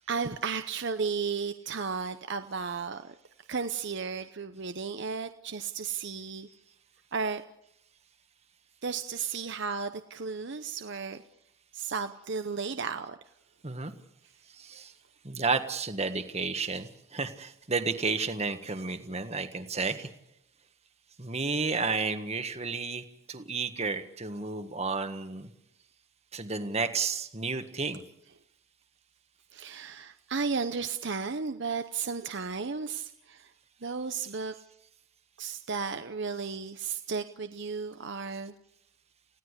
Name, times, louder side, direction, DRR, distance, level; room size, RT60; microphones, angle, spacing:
voice 1, 0.1-3.1 3.5-6.5 7.1-7.4 8.8-11.2 11.7-13.2 29.5-33.5 33.8-34.5 35.4-38.5, right 5 dB, 55° right, 9 dB, 0.8 m, -34 dB
voice 2, 14.6-14.9 15.2-20.1 21.2-23.0 23.3-25.5 26.3-28.0, right 4 dB, 30° right, 8 dB, 1.6 m, -32 dB
29.5 x 16.5 x 8.2 m, 0.82 s
head